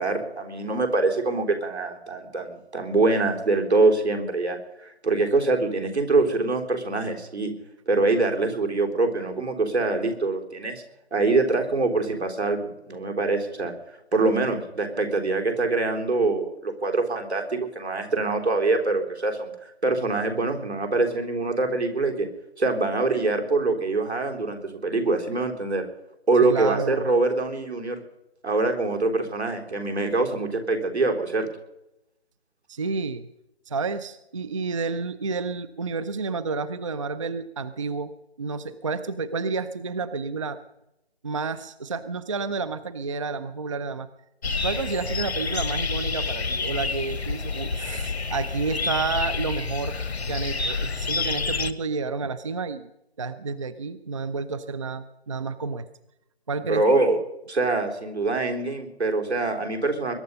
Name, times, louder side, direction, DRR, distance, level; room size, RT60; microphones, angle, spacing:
voice 1, 0.0-7.5 7.9-10.8 11.1-12.6 12.9-13.7 14.1-22.3 22.6-25.9 26.3-28.0 28.4-31.5 56.6-57.2 57.5-60.1, right 3 dB, 80° right, 3 dB, 3.8 m, -24 dB
voice 2, 26.4-27.1 32.7-33.3 33.7-38.1 38.4-40.6 41.2-44.1 44.4-50.0 50.3-52.9 53.2-55.9 56.5-56.8, right 4 dB, 30° right, 14 dB, 0.5 m, -30 dB
sound 1, 44.4-51.7, left 4 dB, 75° left, 1.3 m, -28 dB
21.5 x 11.0 x 5.4 m, 0.87 s
figure-of-eight pair, 150°, 32 cm